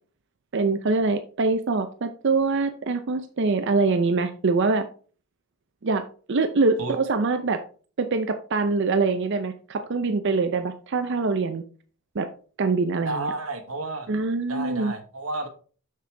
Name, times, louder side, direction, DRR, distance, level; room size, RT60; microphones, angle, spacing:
voice 1, 0.5-4.9 5.8-6.0 6.3-7.6 8.0-11.6 12.2-12.3 12.6-13.3 14.1-14.9, right 3 dB, 60° right, 9 dB, 0.6 m, -24 dB
voice 2, 13.0-14.1 14.5-15.5, right 2 dB, 85° right, 6 dB, 1.3 m, -31 dB
6.7 x 6.5 x 3.4 m, 0.40 s
head